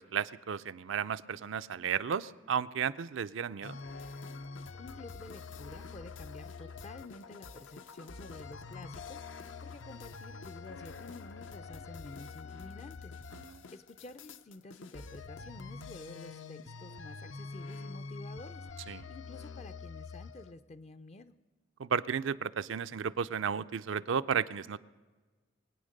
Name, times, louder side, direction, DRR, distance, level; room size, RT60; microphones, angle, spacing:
voice 1, 0.0-3.8 13.4-13.6 18.9-19.0 21.8-24.8, right 7 dB, 70° right, 12 dB, 0.4 m, -33 dB
sound 1, 3.6-20.5, left 4 dB, 70° left, 0.6 m, -46 dB
voice 2, 4.7-21.3, left 2 dB, 35° left, 11 dB, 0.4 m, -50 dB
22.5 x 8.9 x 6.5 m, 1.3 s
head